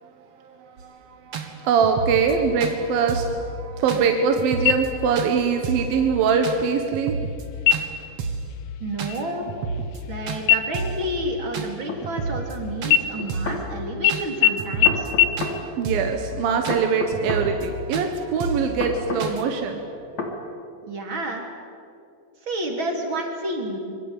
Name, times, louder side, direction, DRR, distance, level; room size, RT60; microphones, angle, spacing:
voice 1, 0.3-7.1 15.4-20.0, right 6 dB, 85° right, 4 dB, 3.3 m, -23 dB
sound 1, 0.8-0.9 1.3-1.5 1.8-2.3 2.6-2.8 3.1-3.4 3.9-4.0 4.4-4.9 5.2-5.3 5.6-5.9 6.4-6.6 6.9-7.4 7.7-7.9 8.2-8.5 9.0-9.2 9.5-10.0 10.3-10.4 10.7-11.1 11.5-11.7 12.0-12.6 12.8-13.0 13.3-13.6 14.1-14.2 14.6-15.1 15.4-15.5 15.9-16.2 16.6-16.8 17.1-17.7 17.9-18.1 18.4-18.7 19.2-19.4, right 4 dB, 50° right, 2.8 m, -30 dB
sound 2, 4.7-5.3 5.7-5.8 6.4-6.9 7.6-8.1 8.5-8.8 9.1-10.2 10.5-12.5 12.9-13.7 14.0-14.1 14.4-14.5 14.8-14.9 15.2-15.3, left 10 dB, 85° left, 2.6 m, -22 dB
voice 2, 8.8-9.5 10.1-15.1 20.8-21.5 22.4-23.8, right 1 dB, 35° right, 2 dB, 4.0 m, -30 dB
sound 3, 11.9-12.0 13.2-13.6 14.8-15.6 16.7-17.5 18.8-19.3 20.2-20.4, left 4 dB, 55° left, 3.8 m, -30 dB
25.5 x 23.0 x 9.1 m, 2.5 s
omnidirectional pair, 4.1 m